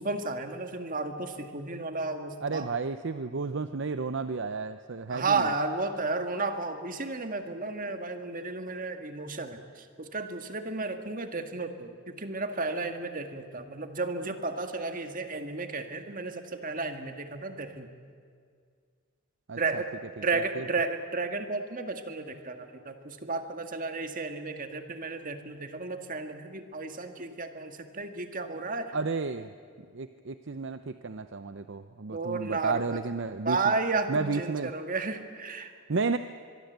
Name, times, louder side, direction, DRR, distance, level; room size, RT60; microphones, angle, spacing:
voice 1, 0.0-2.7 5.1-17.9 19.6-19.9 20.2-29.0 32.1-33.0 33.5-35.7, right 3 dB, 40° right, 7 dB, 1.8 m, -33 dB
voice 2, 2.4-5.5 19.5-19.8 20.3-20.7 28.9-29.5 29.9-33.6 34.1-34.7 35.9-36.2, right 4 dB, 60° right, 11 dB, 0.7 m, -32 dB
24.5 x 22.5 x 8.1 m, 2.1 s
head